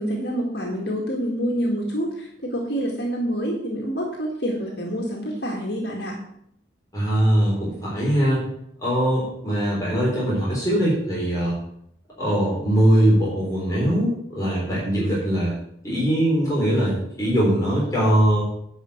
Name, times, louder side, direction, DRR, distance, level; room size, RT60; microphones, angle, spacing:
voice 1, 0.0-6.2, equal, 60° left, -1 dB, 2.0 m, -27 dB
voice 2, 6.9-8.4 8.8-11.5 12.2-15.6 15.8-18.4, right 1 dB, 20° left, -6 dB, 4.0 m, -21 dB
10.5 x 5.2 x 8.1 m, 0.72 s
head